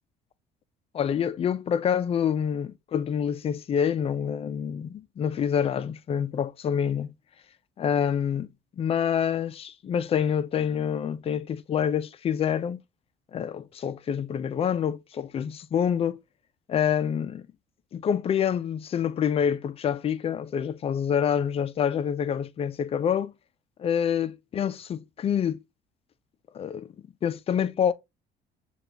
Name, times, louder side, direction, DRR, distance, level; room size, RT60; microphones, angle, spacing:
voice 1, 0.9-7.1 7.8-8.5 8.8-12.8 13.3-16.2 16.7-17.5 17.9-23.3 23.8-25.6 26.5-26.9 27.2-27.9, left 8 dB, 35° left, 0.4 m, -27 dB
6.8 x 2.3 x 2.7 m
cardioid pair, 110°, 17 cm